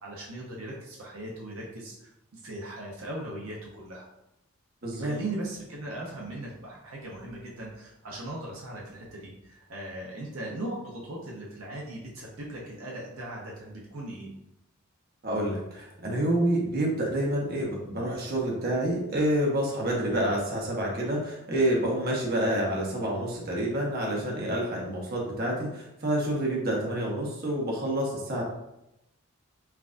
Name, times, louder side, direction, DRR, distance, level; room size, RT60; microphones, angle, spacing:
voice 1, 0.0-2.1 2.4-4.0 5.0-14.3, right 1 dB, 75° right, -3 dB, 0.7 m, -38 dB
voice 2, 4.8-5.1 15.2-28.4, right 1 dB, 45° right, -2 dB, 1.0 m, -28 dB
5.8 x 2.3 x 2.5 m, 0.87 s
head